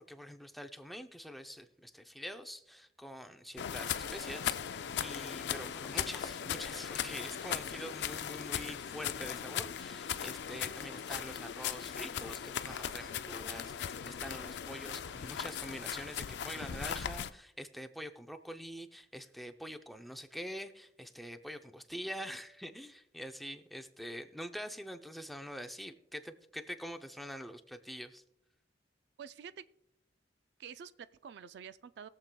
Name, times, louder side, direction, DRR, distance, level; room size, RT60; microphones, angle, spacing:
voice 1, 0.0-28.2, equal, ahead, 5 dB, 0.5 m, -45 dB
sound 1, 3.6-17.3, left 8 dB, 65° left, 0.4 m, -38 dB
voice 2, 29.2-29.6 30.6-32.1, right 7 dB, 60° right, 14 dB, 0.3 m, -48 dB
21.0 x 7.4 x 2.2 m, 0.81 s
head